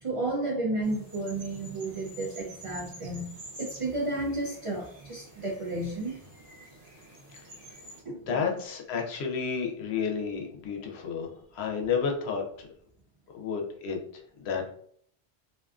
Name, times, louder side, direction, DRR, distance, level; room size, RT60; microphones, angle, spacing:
voice 1, 0.0-3.3 3.6-6.1 8.0-8.5, right 2 dB, 55° right, -4 dB, 0.3 m, -32 dB
sound 1, 0.8-8.0, right 1 dB, 75° right, 1.1 m, -49 dB
voice 2, 8.1-12.7 13.3-14.0 14.4-14.7, left 6 dB, 90° left, 2 dB, 0.8 m, -31 dB
2.5 x 2.3 x 2.3 m, 0.62 s
omnidirectional pair, 1.0 m